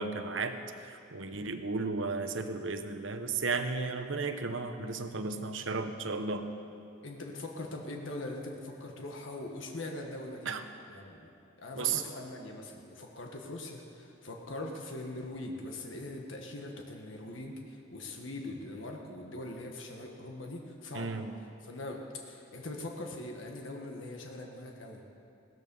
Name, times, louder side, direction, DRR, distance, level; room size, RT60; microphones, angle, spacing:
voice 1, 0.0-6.5 10.4-10.6 11.8-12.0 20.9-21.3, right 4 dB, 75° right, 8 dB, 1.0 m, -34 dB
voice 2, 7.0-10.5 10.9-11.3 11.6-21.2 21.6-25.0, left 2 dB, 80° left, 1 dB, 1.5 m, -42 dB
17.0 x 14.0 x 5.5 m, 2.6 s
head